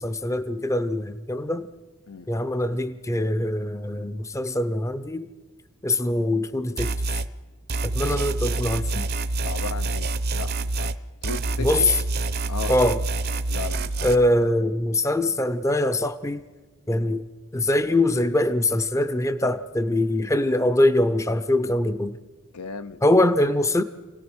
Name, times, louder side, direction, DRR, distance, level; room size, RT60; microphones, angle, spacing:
voice 1, 0.0-1.7 2.3-5.3 5.8-6.9 7.8-9.1 11.6-11.9 12.7-13.0 14.0-16.4 16.9-17.2 17.5-22.2 23.0-23.8, left 1 dB, 15° left, 0.6 m, -23 dB
sound 1, 6.8-7.3 7.7-11.0 11.2-14.2, right 2 dB, 45° right, 0.7 m, -27 dB
voice 2, 7.9-8.2 9.4-10.9 11.2-11.9 12.5-12.8 13.5-14.1 22.5-23.0, left 4 dB, 85° left, 0.8 m, -36 dB
28.0 x 17.5 x 6.3 m
head